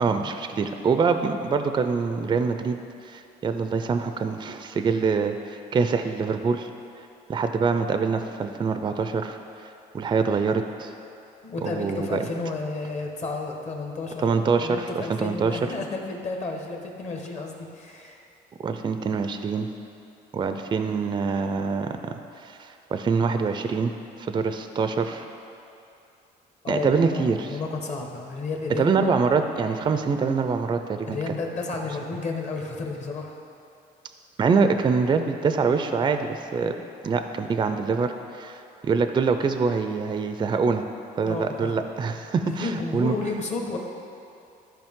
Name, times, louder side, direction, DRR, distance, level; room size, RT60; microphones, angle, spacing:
voice 1, 0.0-2.8 3.0-6.7 7.3-9.4 9.9-10.9 11.6-12.2 14.2-15.6 18.6-19.7 20.3-22.1 22.4-23.9 24.2-25.3 26.7-27.6 28.8-31.2 34.4-36.7 37.0-40.8 41.2-43.1, right 5 dB, 25° right, 8 dB, 0.4 m, -25 dB
voice 2, 11.4-14.2 14.6-18.2 26.6-29.1 31.0-33.3 41.2-41.8 42.5-43.8, left 3 dB, 40° left, 2 dB, 1.2 m, -32 dB
13.0 x 5.1 x 3.7 m, 2.7 s
cardioid pair, 110°, 17 cm